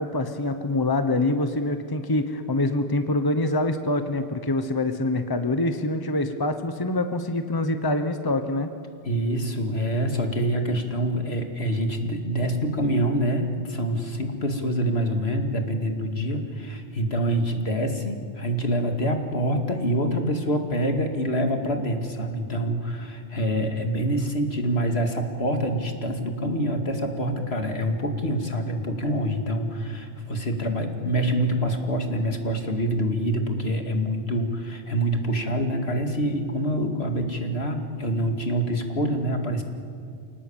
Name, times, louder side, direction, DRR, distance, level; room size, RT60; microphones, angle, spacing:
voice 1, 0.0-8.7, left 2 dB, 20° left, 8 dB, 1.1 m, -25 dB
voice 2, 9.0-39.6, equal, 70° left, 4 dB, 2.6 m, -26 dB
28.0 x 18.5 x 8.8 m, 2.2 s
omnidirectional pair, 1.1 m